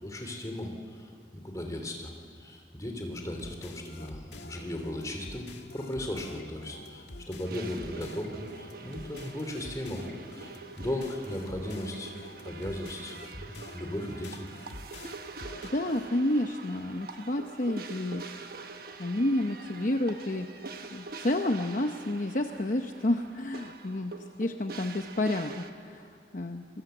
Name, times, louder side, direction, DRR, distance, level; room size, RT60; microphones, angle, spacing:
voice 1, 0.0-2.1 2.4-12.1 12.4-14.4, left 1 dB, 20° left, 3 dB, 2.9 m, -37 dB
sound 1, 3.2-16.1, left 2 dB, 80° left, 1.7 m, -48 dB
sound 2, 7.4-25.7, right 4 dB, 55° right, 1.2 m, -45 dB
voice 2, 15.4-18.3 19.0-20.5 20.9-24.1 24.4-26.8, left 1 dB, 45° left, 5 dB, 0.8 m, -30 dB
27.0 x 21.0 x 7.8 m, 2.2 s
head